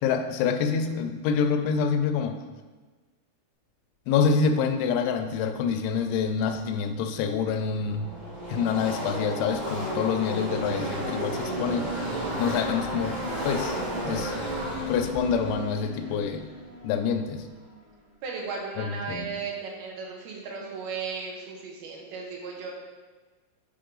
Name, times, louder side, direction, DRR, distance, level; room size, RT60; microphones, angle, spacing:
voice 1, 0.0-2.4 4.1-8.1 8.5-11.9 12.4-13.8 14.1-14.4 14.9-16.4 16.8-17.5 18.8-19.4, left 6 dB, 90° left, 7 dB, 3.0 m, -26 dB
Car passing by / Race car auto racing, 6.7-6.8 7.0-17.6, equal, 40° right, 2.6 m, -33 dB
voice 2, 18.2-22.7, right 5 dB, 70° right, -1 dB, 2.7 m, -35 dB
8.7 x 4.7 x 3.8 m, 1.3 s
omnidirectional pair, 5.2 m